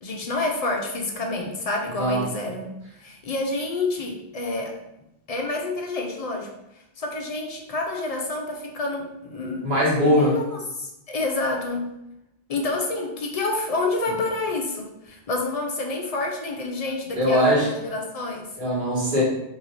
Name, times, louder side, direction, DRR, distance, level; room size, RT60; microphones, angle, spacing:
voice 1, 0.0-2.7 3.0-4.8 5.3-6.5 7.0-9.6 10.0-11.9 12.5-18.5, left 2 dB, 50° left, 1 dB, 0.4 m, -28 dB
voice 2, 9.6-10.3 17.2-17.7 18.6-19.2, equal, 55° right, -9 dB, 1.5 m, -20 dB
3.0 x 2.7 x 3.9 m, 0.86 s
omnidirectional pair, 1.1 m